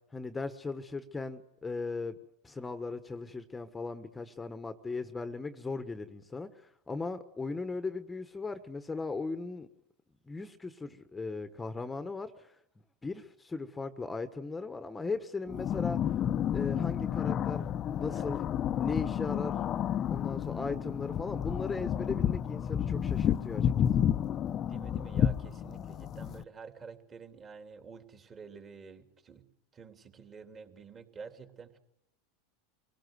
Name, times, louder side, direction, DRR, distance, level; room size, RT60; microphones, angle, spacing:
voice 1, 0.1-2.2 2.4-9.7 10.3-12.6 13.0-16.1 16.5-18.4 18.8-19.6 19.9-23.7, left 3 dB, 15° left, 11 dB, 1.3 m, -38 dB
sound 1, 15.5-26.4, left 9 dB, 35° left, 0.8 m, -31 dB
voice 2, 24.7-29.4 29.7-31.8, right 5 dB, 30° right, 6 dB, 3.2 m, -49 dB
24.5 x 18.0 x 8.0 m, 0.81 s
hypercardioid pair, 100°, 0 cm